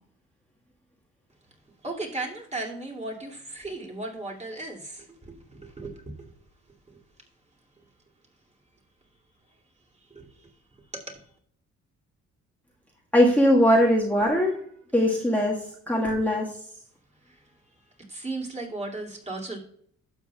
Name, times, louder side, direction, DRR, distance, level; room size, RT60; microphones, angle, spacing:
voice 1, 1.8-6.3 6.9-7.0 10.1-10.5 10.9-11.2 17.3-17.4 18.1-19.6, right 2 dB, 20° right, -2 dB, 2.5 m, -36 dB
voice 2, 13.1-14.5 14.9-15.6 15.9-16.5, equal, 5° left, -4 dB, 1.6 m, -20 dB
12.0 x 6.8 x 2.3 m, 0.62 s
cardioid pair, 90°, 30 cm